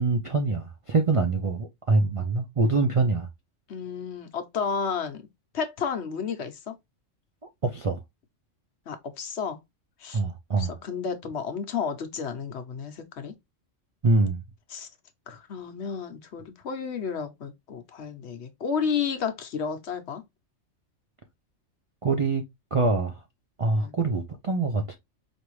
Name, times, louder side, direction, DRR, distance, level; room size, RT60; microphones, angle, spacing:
voice 1, 0.0-3.3 7.6-8.0 10.1-10.7 14.0-14.4 22.0-22.4 22.7-23.2 23.6-25.0, right 3 dB, 50° right, 0.4 m, -24 dB
voice 2, 3.7-5.3 5.5-6.7 8.9-9.6 10.0-10.2 10.6-13.4 14.7-14.9 15.3-20.2 23.7-23.9, left 6 dB, 60° left, 1.0 m, -32 dB
4.8 x 2.6 x 3.0 m
omnidirectional pair, 1.3 m